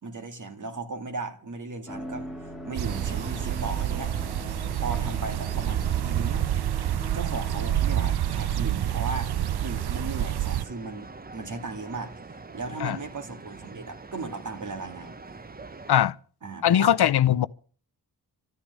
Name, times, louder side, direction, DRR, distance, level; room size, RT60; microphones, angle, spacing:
voice 1, 0.0-4.1 4.7-6.6 7.1-9.3 9.6-12.1 12.5-15.2 16.4-16.9, right 3 dB, 50° right, 2.4 m, -36 dB
sound 1, 1.9-10.4 10.6-10.7, right 1 dB, ahead, 1.9 m, -42 dB
sound 2, 2.7-10.6, right 11 dB, 80° right, 0.7 m, -28 dB
sound 3, 2.8-16.0, right 3 dB, 25° right, 0.8 m, -43 dB
voice 2, 16.6-17.5, left 10 dB, 80° left, 0.7 m, -20 dB
13.0 x 10.5 x 9.6 m
wide cardioid pair, 160°, 38 cm